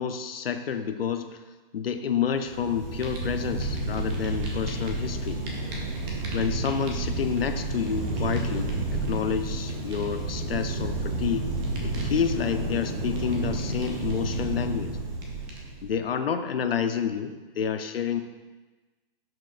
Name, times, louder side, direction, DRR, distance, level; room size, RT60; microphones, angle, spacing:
voice 1, 0.0-1.4 1.7-5.4 6.3-11.5 11.8-15.0 15.8-18.2, left 7 dB, 75° left, 8 dB, 0.8 m, -29 dB
Fire, 2.3-15.9, right 2 dB, 10° right, 0.4 m, -30 dB
11.0 x 6.2 x 2.6 m, 1.2 s
hypercardioid pair, 150°, 29 cm